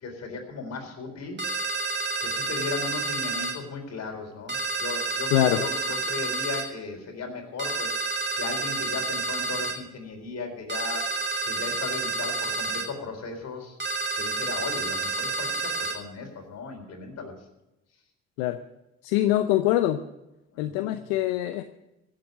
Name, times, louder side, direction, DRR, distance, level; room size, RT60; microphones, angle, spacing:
voice 1, 0.0-1.4 2.2-5.3 5.6-8.0 8.4-11.1 11.5-13.8 14.2-17.3 20.5-21.0, left 4 dB, 55° left, 3 dB, 4.1 m, -36 dB
sound 1, 1.4-3.6 4.5-6.7 7.6-9.8 10.7-12.9 13.8-16.0, right 3 dB, 35° right, 3.1 m, -29 dB
voice 2, 5.3-5.7 18.4-18.6 19.0-20.0 20.6-21.6, left 13 dB, 80° left, 10 dB, 0.7 m, -24 dB
16.0 x 7.6 x 9.2 m, 0.94 s
hypercardioid pair, 55°, 31 cm